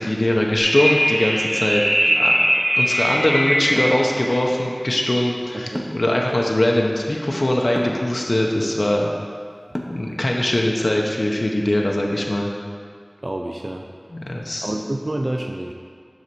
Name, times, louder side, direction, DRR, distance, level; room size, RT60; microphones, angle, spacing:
voice 1, 0.0-1.8 2.2-9.1 9.9-12.5 14.1-14.7, left 1 dB, 65° left, -1 dB, 0.8 m, -21 dB
sound 1, 0.6-4.1, equal, 25° right, 2.3 m, -20 dB
sound 2, 3.8-4.0 5.7-6.1 7.7-8.0 9.7-10.1, equal, 15° left, 1.0 m, -29 dB
voice 2, 5.5-5.9 13.2-13.8 14.6-15.7, right 1 dB, 50° right, 2 dB, 0.5 m, -28 dB
9.6 x 4.1 x 6.8 m, 2.1 s
wide cardioid pair, 45°, 0 cm